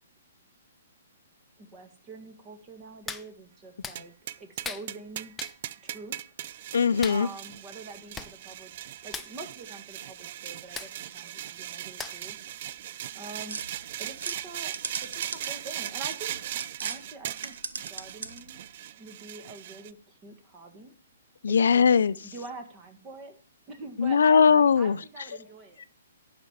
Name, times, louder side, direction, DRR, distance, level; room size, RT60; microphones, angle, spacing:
voice 1, 1.6-5.3 5.8-6.2 7.1-8.7 9.0-12.4 13.1-13.6 14.0-14.8 15.0-17.6 17.9-18.6 19.0-20.9 21.5-21.9 22.1-23.4 23.7-25.8, right 3 dB, 25° right, 6 dB, 1.8 m, -45 dB
Hands, 3.1-3.3 3.8-4.0 4.6-4.9 5.4-5.6 7.0-7.2 7.9-8.3 8.6-8.8 9.1-9.3 10.8-10.9 12.0-12.3 12.8-12.9, left 5 dB, 10° left, 0.5 m, -37 dB
sound 1, 3.9-19.9, right 12 dB, 45° right, 0.4 m, -39 dB
voice 2, 6.7-7.3 21.4-22.2 24.0-25.0, left 6 dB, 80° left, 15 dB, 0.5 m, -20 dB
sound 2, 13.5-17.0 17.3-18.6, right 4 dB, 90° right, 1.0 m, -39 dB
11.0 x 5.1 x 7.3 m, 0.43 s
hypercardioid pair, 150°, 0 cm